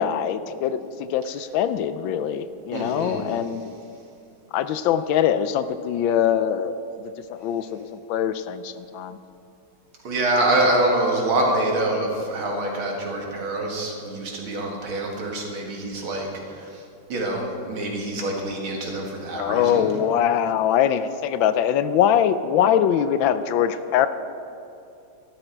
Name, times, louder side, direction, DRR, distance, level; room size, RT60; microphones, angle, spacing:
voice 1, 0.0-3.6 4.5-6.7 7.3-9.2 19.3-24.1, left 9 dB, 80° left, 12 dB, 1.3 m, -22 dB
voice 2, 2.7-3.3 10.0-16.3 16.6-16.7 17.1-19.9, right 1 dB, 85° right, 0 dB, 2.8 m, -25 dB
13.5 x 12.5 x 4.5 m, 2.6 s
omnidirectional pair, 2.2 m